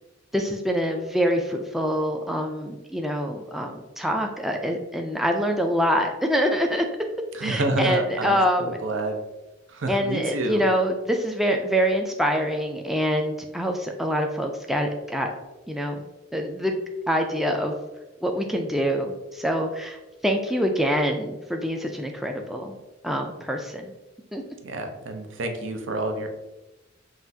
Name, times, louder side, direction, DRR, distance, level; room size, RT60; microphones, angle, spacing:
voice 1, 0.3-6.9 7.4-8.8 9.9-15.3 15.7-16.0 16.3-16.8 17.1-17.8 18.2-22.8 23.0-23.9 24.3-24.4, equal, ahead, 3 dB, 0.3 m, -25 dB
voice 2, 7.3-9.2 9.7-10.7 24.6-26.3, right 2 dB, 75° right, 5 dB, 0.6 m, -28 dB
5.7 x 2.5 x 2.7 m, 1.0 s
head